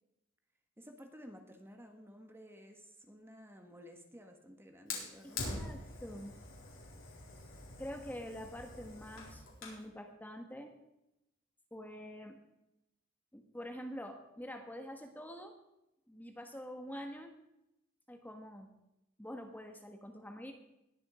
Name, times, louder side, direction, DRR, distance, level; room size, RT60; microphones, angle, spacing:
voice 1, 0.8-5.7, equal, 10° right, 5 dB, 1.3 m, -54 dB
Fire, 4.9-9.9, left 3 dB, 75° left, 4.1 m, -45 dB
voice 2, 5.2-6.4 7.8-10.7 11.7-12.4 13.3-15.5 16.1-17.3 18.1-18.7 19.2-20.5, equal, 10° left, 4 dB, 1.4 m, -46 dB
20.5 x 7.5 x 4.9 m, 0.87 s
head